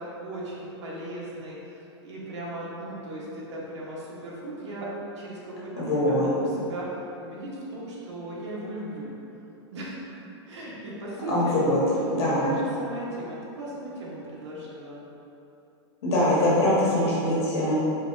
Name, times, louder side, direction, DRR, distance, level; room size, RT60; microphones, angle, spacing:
voice 1, 0.0-4.9 5.2-6.9 7.2-9.1 9.7-10.0 10.5-11.6 12.0-15.0, right 1 dB, 90° right, -5 dB, 1.1 m, -37 dB
voice 2, 5.7-6.3 11.3-11.8 12.1-12.5 16.0-17.7, left 1 dB, 65° left, -8 dB, 1.3 m, -23 dB
4.3 x 2.9 x 2.6 m, 2.9 s
supercardioid pair, 170°, 15 cm